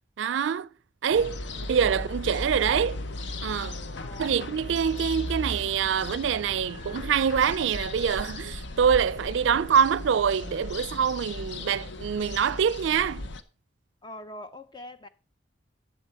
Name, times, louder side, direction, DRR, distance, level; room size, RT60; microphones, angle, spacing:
voice 1, 0.2-0.7 1.0-1.4 1.7-3.0 3.4-3.8 4.2-13.3, right 7 dB, 80° right, 0.4 m, -25 dB
sound 1, 1.1-13.4, left 2 dB, 70° left, 0.8 m, -37 dB
voice 2, 1.6-2.1 4.0-4.5 14.0-15.1, left 1 dB, 25° left, 0.5 m, -44 dB
Wind instrument woodwind instrument, 5.6-10.2, left 3 dB, 45° left, 1.3 m, -52 dB
11.5 x 7.3 x 4.3 m
head